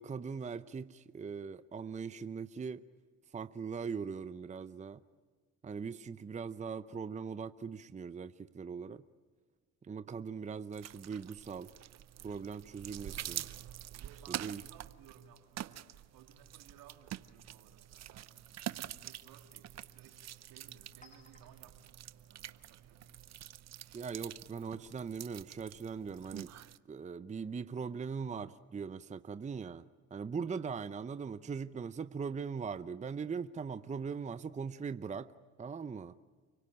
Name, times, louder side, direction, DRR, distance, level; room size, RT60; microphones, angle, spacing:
voice 1, 0.0-2.8 3.3-5.0 5.6-9.0 9.8-11.7 12.2-13.5 14.3-14.6 23.9-26.5 26.9-29.8 30.1-35.3 35.6-36.2, right 5 dB, 20° right, 13 dB, 0.7 m, -40 dB
sound 1, 10.7-26.8, right 12 dB, 50° right, 0.8 m, -46 dB
voice 2, 13.9-18.5 19.0-23.3 30.5-30.7, right 8 dB, 70° right, 4 dB, 3.0 m, -60 dB
Chink clink, 18.1-23.6, left 1 dB, 20° left, 7.4 m, -68 dB
29.5 x 18.0 x 8.7 m, 1.5 s
supercardioid pair, 70°, 35 cm